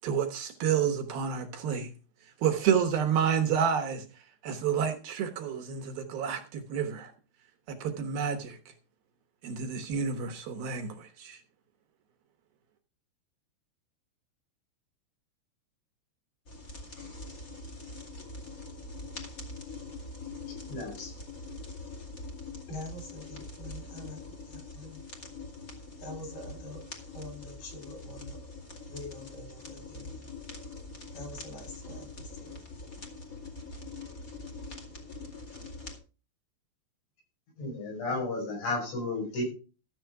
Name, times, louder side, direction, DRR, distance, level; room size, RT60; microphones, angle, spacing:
voice 1, 0.0-1.9 2.4-4.1 4.4-7.1 7.7-8.7 9.4-11.4, right 7 dB, 70° right, 2.5 m, -29 dB
sound 1, 16.5-36.0, left 3 dB, 30° left, 1.7 m, -43 dB
voice 2, 20.7-21.1 37.6-39.4, left 2 dB, 85° left, 8.2 m, -33 dB
voice 3, 22.7-24.2 24.5-25.0 26.0-26.8 27.1-28.4 28.9-30.3 31.1-32.6, left 2 dB, 60° left, 5.7 m, -45 dB
13.5 x 7.5 x 4.7 m
omnidirectional pair, 5.2 m